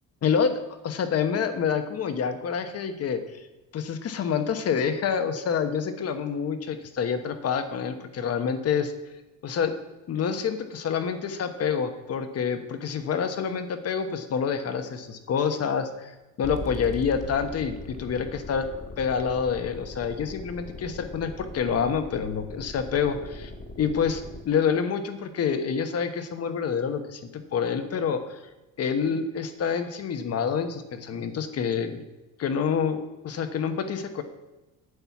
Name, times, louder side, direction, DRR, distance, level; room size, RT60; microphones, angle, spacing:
voice 1, 0.2-3.2 3.7-8.9 9.4-9.7 10.1-18.7 19.0-23.5 23.8-28.4 28.8-32.0 32.4-34.2, left 6 dB, 45° left, 8 dB, 1.0 m, -27 dB
sound 1, 16.4-24.5, left 2 dB, 20° left, 1.4 m, -40 dB
8.8 x 8.1 x 5.9 m, 1.1 s
cardioid pair, 160°, 35 cm